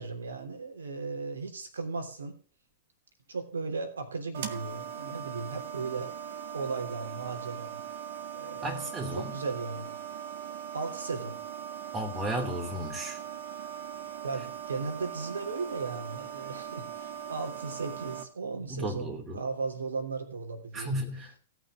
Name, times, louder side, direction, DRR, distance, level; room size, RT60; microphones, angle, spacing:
voice 1, 0.0-2.3 3.3-6.1 6.5-7.8 8.3-10.0 10.7-11.4 14.2-20.9, right 4 dB, 80° right, 3.1 m, -36 dB
sound 1, 4.3-18.2, right 8 dB, 60° right, 1.9 m, -40 dB
voice 2, 8.6-9.3 11.9-13.2 18.7-19.4 20.7-21.3, right 1 dB, 20° right, 2.6 m, -34 dB
17.0 x 6.2 x 6.3 m
hypercardioid pair, 110°, 0 cm